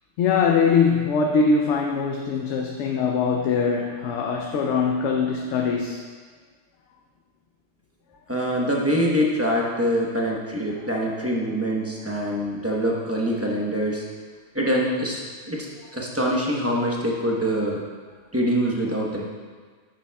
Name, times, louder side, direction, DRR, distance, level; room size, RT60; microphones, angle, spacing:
voice 1, 0.2-6.0, left 5 dB, 75° left, 1 dB, 0.9 m, -22 dB
voice 2, 8.3-14.1 14.5-15.2 15.5-15.7 15.9-17.8 18.3-19.2, equal, 15° right, -3 dB, 0.9 m, -24 dB
10.0 x 6.9 x 2.3 m, 1.5 s
omnidirectional pair, 1.2 m